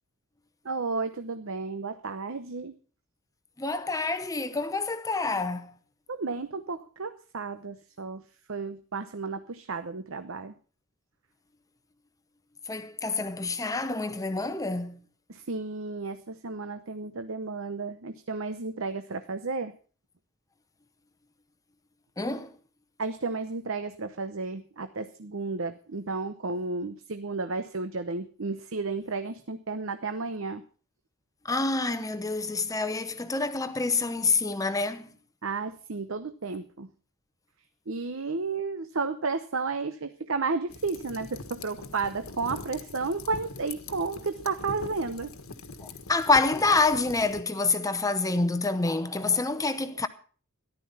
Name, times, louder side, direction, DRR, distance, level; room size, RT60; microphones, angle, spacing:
voice 1, 0.6-2.7 6.1-8.2 8.5-10.5 15.3-19.7 23.0-30.6 35.4-36.9 37.9-45.3, right 4 dB, 65° right, 0.9 m, -32 dB
voice 2, 3.6-5.7 12.7-15.0 22.2-22.5 31.4-35.1 45.8-50.1, left 3 dB, 15° left, 0.8 m, -27 dB
sound 1, 40.7-47.4, left 3 dB, 80° left, 1.5 m, -42 dB
14.0 x 11.5 x 5.6 m
head